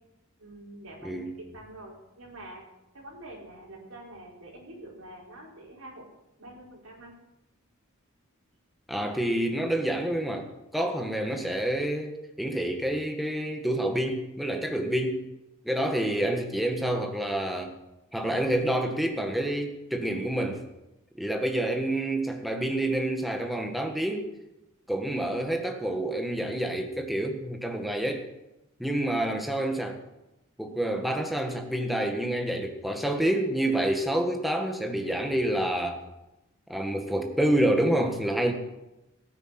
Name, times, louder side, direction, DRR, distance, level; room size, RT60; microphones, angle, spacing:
voice 1, 0.4-2.6 2.9-6.1 6.4-7.1, right 1 dB, 80° right, -3 dB, 4.7 m, -46 dB
voice 2, 8.9-10.5 10.7-15.2 15.6-17.7 18.1-20.6 21.2-24.3 24.9-28.3 28.8-30.0 30.6-36.0 36.7-38.5, right 1 dB, ahead, 3 dB, 1.6 m, -28 dB
17.0 x 9.4 x 5.9 m, 0.95 s
head